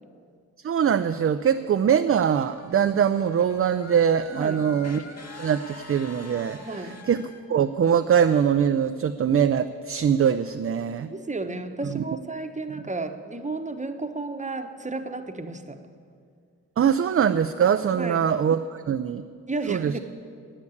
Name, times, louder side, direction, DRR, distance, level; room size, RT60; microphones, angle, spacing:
voice 1, 0.6-5.0 5.4-6.6 7.1-7.2 7.5-11.1 11.9-12.0 16.8-19.2 19.7-19.9, right 8 dB, 35° right, 8 dB, 0.5 m, -22 dB
sound 1, 2.3-7.4, left 2 dB, 40° left, 1.7 m, -45 dB
voice 2, 4.3-4.6 6.6-7.1 11.1-15.8 17.9-18.2 19.5-20.0, right 3 dB, 20° right, 8 dB, 1.1 m, -33 dB
9.6 x 8.6 x 9.6 m, 2.2 s
supercardioid pair, 45°, 37 cm